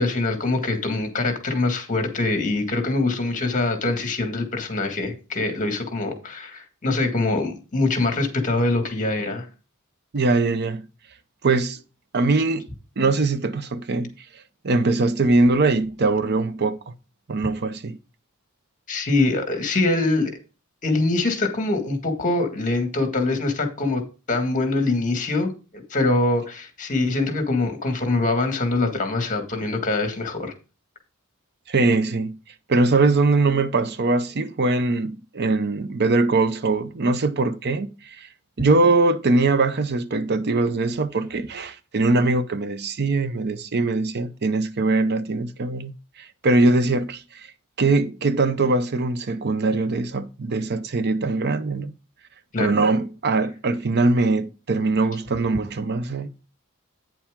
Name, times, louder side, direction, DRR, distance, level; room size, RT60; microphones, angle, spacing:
voice 1, 0.0-9.5 18.9-20.3 20.8-24.0 24.3-30.5 52.5-52.7, left 2 dB, 35° left, 1.8 m, -24 dB
voice 2, 10.1-10.9 11.4-11.8 12.1-12.7 13.0-14.1 14.6-16.9 17.3-18.0 31.7-32.4 32.7-38.3 38.6-45.9 46.2-47.5 47.8-51.9 52.6-56.3, right 3 dB, 50° right, 0.7 m, -22 dB
9.2 x 7.1 x 3.7 m
head